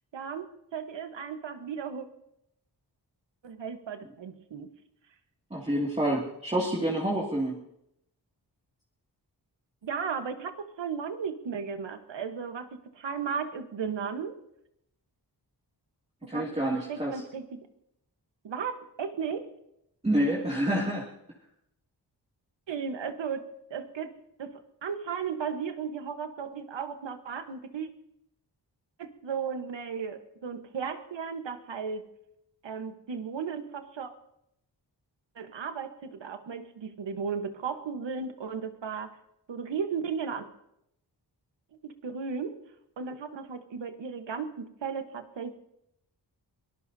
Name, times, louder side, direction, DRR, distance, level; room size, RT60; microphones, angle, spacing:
voice 1, 0.1-2.1 3.4-4.7 9.8-14.4 16.2-17.7 18.4-19.5 22.7-24.1 24.4-27.9 29.0-32.1 32.6-34.1 35.3-39.2 39.5-40.5 41.8-42.6 43.0-45.5, right 6 dB, 90° right, 8 dB, 1.3 m, -35 dB
voice 2, 5.5-7.6 16.3-17.1 20.0-21.1, right 1 dB, 15° right, -4 dB, 2.4 m, -28 dB
23.5 x 18.5 x 2.8 m, 0.80 s
wide cardioid pair, 75°, 42 cm